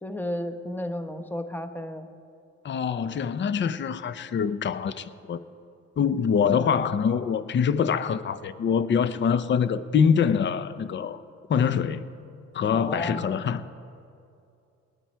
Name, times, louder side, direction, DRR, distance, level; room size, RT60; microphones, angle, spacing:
voice 1, 0.0-2.1 6.4-6.8 12.7-13.4, left 1 dB, 5° left, 1.0 m, -33 dB
voice 2, 2.6-5.4 6.0-11.2 11.5-12.1 12.5-13.6, left 7 dB, 40° left, 0.6 m, -24 dB
20.5 x 9.2 x 4.5 m
cardioid pair, 90°, 30 cm